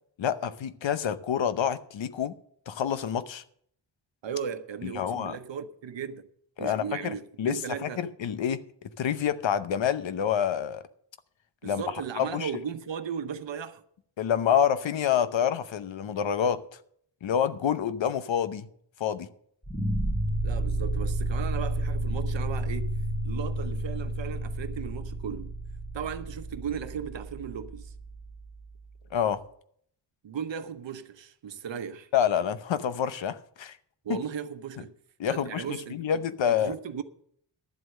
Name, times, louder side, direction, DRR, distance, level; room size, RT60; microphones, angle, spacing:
voice 1, 0.2-2.3 2.7-3.4 4.8-5.4 6.6-8.6 9.0-10.8 11.6-11.8 12.2-12.5 14.2-16.6 17.2-18.7 19.0-19.3 29.1-29.4 32.1-33.8 35.2-36.7, left 8 dB, 90° left, 0.9 m, -27 dB
voice 2, 4.2-6.3 6.6-8.1 11.6-13.8 16.1-16.2 20.4-22.9 23.2-25.5 25.9-27.9 30.2-32.1 34.0-34.9 35.2-36.2 36.5-37.0, right 7 dB, 80° right, 1.0 m, -36 dB
sound 1, 19.6-28.7, right 1 dB, 10° left, 2.4 m, -31 dB
12.0 x 7.9 x 6.5 m
wide cardioid pair, 85°, 44 cm